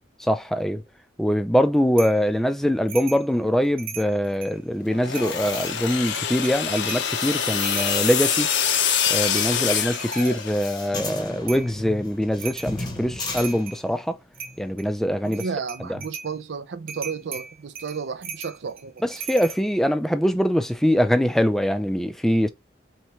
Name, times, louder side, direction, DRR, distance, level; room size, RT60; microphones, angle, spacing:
voice 1, 0.2-0.8 1.2-8.5 9.1-14.2 14.6-15.4 15.9-16.0 19.0-22.5, equal, ahead, 0.3 m, -23 dB
sound 1, 2.0-2.2 2.9-3.3 3.6-4.6 5.1-5.6 6.0-7.1 7.5-10.4 11.5-11.7 12.4-12.8 13.1-13.8 14.3-14.9 15.3-16.3 16.9-19.6, right 6 dB, 50° right, 0.7 m, -38 dB
sound 2, 4.9-10.8, left 8 dB, 85° left, 0.6 m, -25 dB
sound 3, 5.0-14.1 14.4-14.7, left 3 dB, 25° left, 0.7 m, -35 dB
voice 2, 15.2-19.2, right 5 dB, 85° right, 0.5 m, -33 dB
3.3 x 3.1 x 4.2 m
head